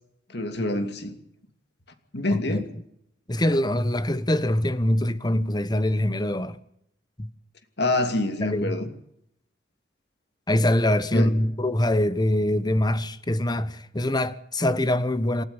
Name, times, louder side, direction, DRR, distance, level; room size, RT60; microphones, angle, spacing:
voice 1, 0.3-1.2 2.1-2.7 7.8-8.9 11.1-11.3, left 2 dB, 60° left, 2.7 m, -26 dB
voice 2, 2.3-2.6 3.3-6.6 7.2-7.3 8.4-8.9 10.5-15.4, left 1 dB, 25° left, 1.1 m, -24 dB
28.5 x 13.5 x 7.1 m
head